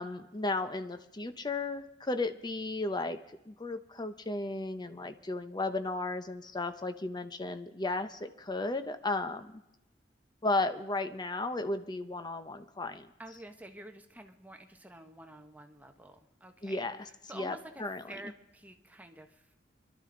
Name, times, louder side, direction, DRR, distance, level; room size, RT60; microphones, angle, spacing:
voice 1, 0.0-3.2 3.5-9.6 10.4-13.1 16.6-17.0 17.3-17.5 17.8-18.0, left 2 dB, 25° left, 9 dB, 0.7 m, -34 dB
voice 2, 13.2-19.5, right 1 dB, 10° right, 5 dB, 0.9 m, -50 dB
24.0 x 12.0 x 3.8 m, 0.91 s
head